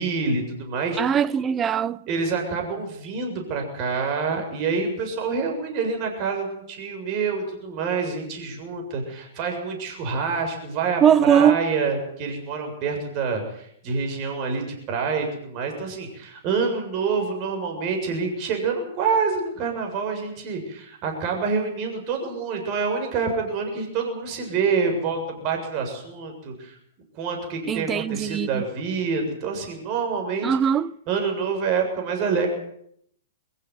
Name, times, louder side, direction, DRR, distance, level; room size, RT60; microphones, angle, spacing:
voice 1, 0.0-1.0 2.1-26.8 27.1-30.5 31.1-32.5, right 5 dB, 40° right, 7.4 m, -27 dB
voice 2, 1.0-2.0 11.0-11.6 27.7-28.6 30.4-30.9, right 8 dB, 20° right, 0.9 m, -20 dB
23.0 x 15.0 x 9.6 m
hypercardioid pair, 120°, 0 cm